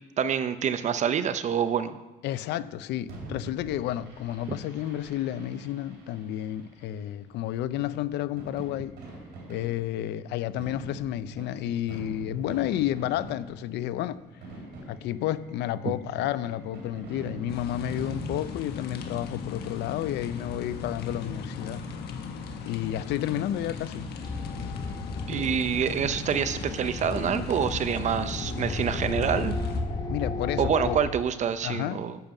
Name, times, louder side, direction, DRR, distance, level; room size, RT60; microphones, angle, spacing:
voice 1, 0.2-2.0 25.3-29.5 30.6-32.2, right 7 dB, 45° right, 0.6 m, -27 dB
voice 2, 2.2-9.0 9.5-14.2 14.9-21.8 22.6-24.1 30.1-31.0 31.6-32.1, left 12 dB, 85° left, 0.5 m, -31 dB
Fireworks, 3.1-19.2, right 2 dB, 80° right, 3.3 m, -45 dB
sound 1, 17.5-29.8, left 5 dB, 70° left, 1.4 m, -38 dB
sound 2, 24.2-31.0, left 3 dB, 25° left, 1.9 m, -33 dB
10.5 x 5.3 x 7.2 m
cardioid pair, 130°, 17 cm